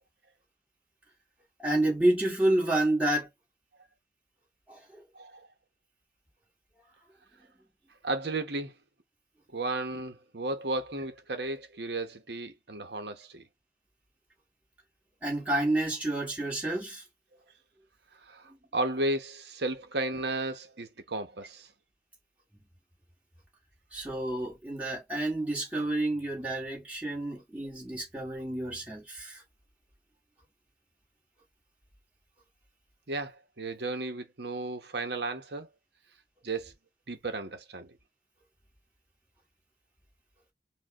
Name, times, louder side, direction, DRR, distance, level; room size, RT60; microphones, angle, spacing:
voice 1, 1.6-3.3 4.7-5.0 15.2-17.0 23.9-29.4, right 1 dB, 10° right, 2.1 m, -29 dB
voice 2, 5.2-5.5 8.0-8.7 9.5-13.4 18.3-21.7 33.1-35.7 36.4-36.7 37.1-37.9, right 2 dB, 75° right, 1.1 m, -34 dB
5.3 x 2.5 x 3.6 m
head